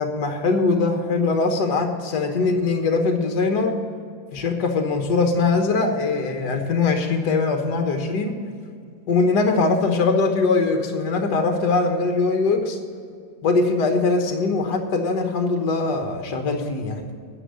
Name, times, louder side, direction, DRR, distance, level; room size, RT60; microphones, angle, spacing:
voice 1, 0.0-3.8 4.3-8.3 9.1-12.8 13.4-17.0, left 3 dB, 60° left, 4 dB, 1.8 m, -21 dB
10.0 x 7.5 x 9.5 m, 2.2 s
omnidirectional pair, 2.0 m